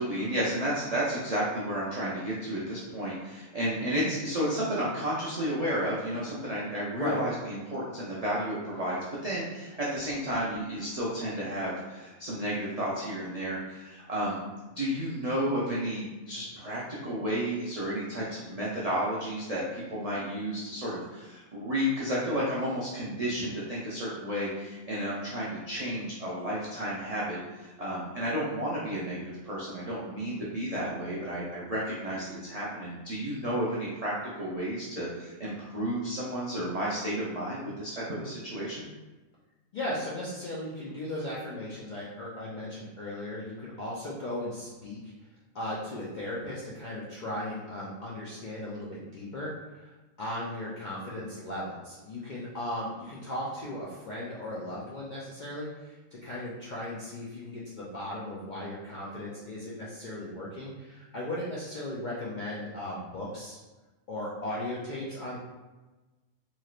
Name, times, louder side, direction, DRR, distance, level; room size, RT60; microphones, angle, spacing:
voice 1, 0.0-14.4 14.8-38.9, equal, 80° right, -7 dB, 0.3 m, -32 dB
voice 2, 39.7-45.1 45.5-49.9 50.2-63.6 64.1-65.4, left 1 dB, 90° left, -7 dB, 0.4 m, -37 dB
3.1 x 2.8 x 2.4 m, 1.2 s
omnidirectional pair, 1.5 m